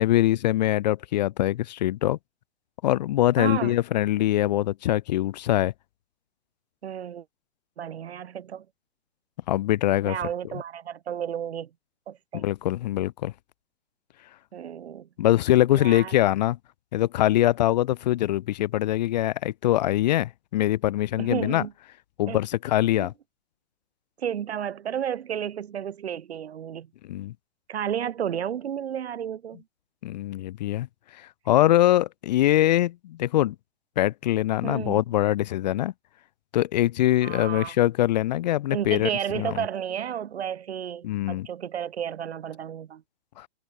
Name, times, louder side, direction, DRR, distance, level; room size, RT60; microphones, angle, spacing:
voice 1, 0.0-2.2 2.8-5.7 9.5-10.2 12.3-13.3 15.2-16.6 16.9-21.6 22.2-23.1 27.1-27.3 30.0-30.9 31.2-33.5 34.0-35.9 36.5-39.6 41.0-41.5 43.4-43.5, left 14 dB, 40° left, 0.8 m, -23 dB
voice 2, 3.4-3.8 6.8-7.2 7.8-8.6 10.0-11.7 12.1-12.5 14.5-15.1 15.7-16.2 21.2-21.7 22.3-22.4 22.9-23.1 24.2-26.9 27.7-29.6 34.6-35.0 37.2-37.7 38.7-43.0, right 9 dB, 65° right, 3.4 m, -32 dB
hypercardioid pair, 150°, 34 cm